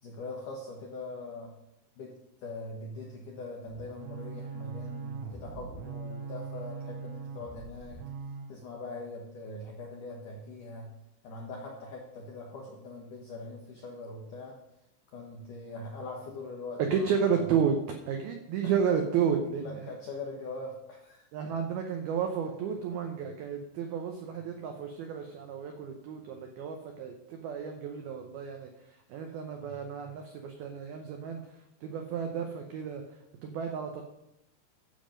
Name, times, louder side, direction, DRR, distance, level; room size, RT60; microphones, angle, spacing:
voice 1, 0.0-1.5 2.0-8.0 8.5-10.9 11.2-14.6 15.1-17.3 18.6-18.7 19.6-21.3 29.6-29.7, left 2 dB, 80° left, -1 dB, 1.8 m, -42 dB
sound 1, 3.7-8.6, right 5 dB, 70° right, 2.8 m, -41 dB
voice 2, 16.9-17.8 18.1-20.0 21.3-34.0, right 7 dB, 90° right, 4 dB, 2.1 m, -32 dB
12.5 x 7.5 x 5.1 m, 0.84 s
omnidirectional pair, 5.6 m